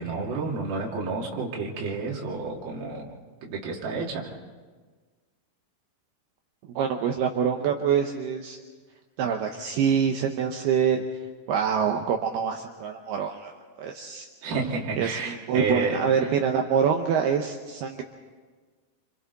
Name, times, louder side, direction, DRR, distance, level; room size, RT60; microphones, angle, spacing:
voice 1, 0.0-4.3 14.4-16.3, right 4 dB, 50° right, -3 dB, 4.0 m, -30 dB
voice 2, 6.8-8.6 9.2-11.0 11.5-13.5 13.8-14.3 15.0-18.0, right 7 dB, 80° right, 3 dB, 2.3 m, -25 dB
29.0 x 26.0 x 4.1 m, 1.4 s
omnidirectional pair, 5.8 m